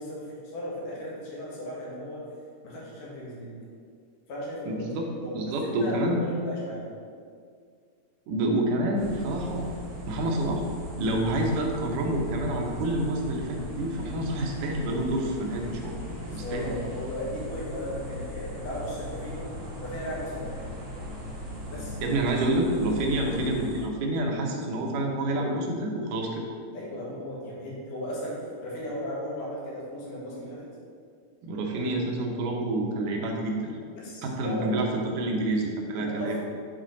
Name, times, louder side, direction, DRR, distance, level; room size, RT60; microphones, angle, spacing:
voice 1, 0.0-2.2 2.6-3.5 4.3-4.9 5.2-6.8 16.2-19.5 19.8-20.6 21.7-22.0 26.7-28.3 28.6-30.7 33.9-34.7 36.0-36.4, equal, 80° left, -6 dB, 3.2 m, -36 dB
voice 2, 4.7-5.1 5.3-6.2 8.3-9.6 10.1-10.6 11.0-16.0 16.3-16.7 22.0-26.4 31.4-33.7 34.2-36.4, right 1 dB, 80° right, 1 dB, 2.4 m, -28 dB
sound 1, 9.0-23.8, left 1 dB, 35° right, 1.6 m, -38 dB
7.9 x 4.2 x 3.9 m, 2.1 s
omnidirectional pair, 3.7 m